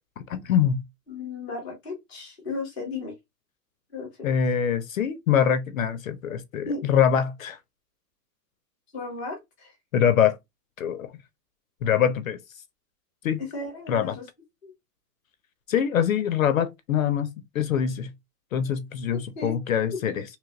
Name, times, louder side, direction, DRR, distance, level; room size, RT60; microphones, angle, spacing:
voice 1, 0.3-0.8 4.2-7.6 9.9-10.4 10.8-11.1 11.8-12.4 13.2-13.4 13.9-14.1 15.7-18.1 18.5-20.2, left 8 dB, 55° left, 0.5 m, -24 dB
voice 2, 1.1-3.1 3.9-4.1 6.7-6.9 8.9-9.7 13.4-14.2 14.6-14.7 19.4-19.5 20.1-20.2, left 3 dB, 5° left, 0.5 m, -34 dB
3.1 x 3.0 x 2.5 m
hypercardioid pair, 175°, 49 cm